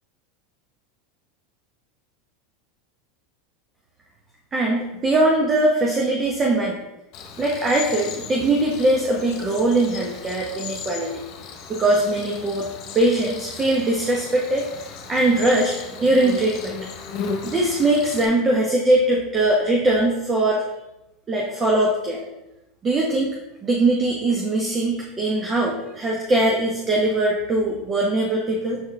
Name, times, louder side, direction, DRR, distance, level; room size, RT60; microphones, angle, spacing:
voice 1, 4.5-6.8 7.4-11.1 11.7-12.7 12.9-16.8 17.4-20.6 21.3-22.2 22.8-23.4 23.6-28.8, right 2 dB, 25° right, -2 dB, 1.2 m, -21 dB
Cricket, 7.1-18.3, left 5 dB, 55° left, 1.2 m, -36 dB
7.2 x 4.5 x 3.6 m, 0.95 s
hypercardioid pair, 100°, 0 cm